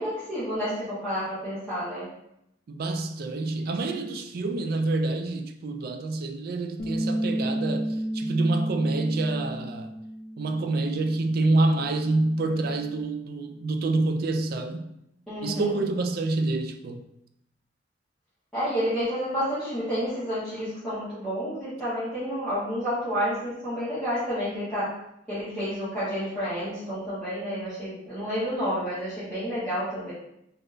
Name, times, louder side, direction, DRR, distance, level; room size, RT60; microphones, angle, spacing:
voice 1, 0.0-2.1 15.3-15.6 18.5-24.9 25.3-30.1, equal, 5° left, 1.1 m, -30 dB
voice 2, 2.7-9.9 10.4-14.9 15.4-17.0, right 2 dB, 50° right, 0.3 m, -27 dB
Bass guitar, 6.8-13.0, right 1 dB, 45° left, 0.4 m, -33 dB
3.5 x 2.6 x 2.5 m
head